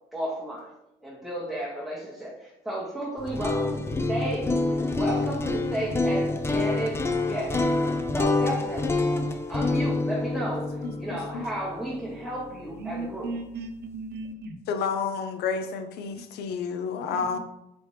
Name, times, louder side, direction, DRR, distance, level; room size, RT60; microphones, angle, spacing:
voice 1, 0.1-0.7 1.0-7.6 8.1-9.1 9.5-13.3, right 1 dB, ahead, -7 dB, 1.0 m, -33 dB
sound 1, 3.2-13.2, left 2 dB, 15° left, 0.4 m, -27 dB
voice 2, 10.8-11.4 14.7-17.4, left 5 dB, 75° left, 8 dB, 0.5 m, -30 dB
voice 3, 12.7-14.6 16.2-16.3 17.1-17.4, right 2 dB, 75° right, 5 dB, 0.7 m, -37 dB
4.1 x 3.2 x 3.2 m, 0.87 s
cardioid pair, 110°, 17 cm